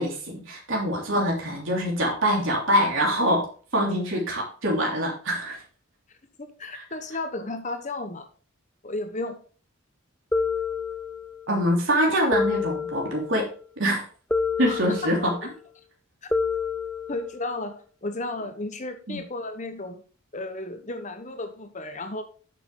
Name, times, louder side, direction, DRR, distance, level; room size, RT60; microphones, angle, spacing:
voice 1, 0.0-5.6 6.7-6.8 11.5-13.5 13.8-14.0 14.6-15.3 19.1-19.2, equal, 60° right, -1 dB, 3.0 m, -24 dB
voice 2, 6.4-8.3 8.8-9.4 14.6-15.5 17.1-20.0 20.3-22.2, left 2 dB, 35° left, 8 dB, 1.1 m, -34 dB
sound 1, 10.3-11.5 12.3-13.5 14.3-15.5 16.3-17.5, left 4 dB, 5° left, 0.8 m, -28 dB
8.8 x 6.8 x 3.8 m, 0.39 s
head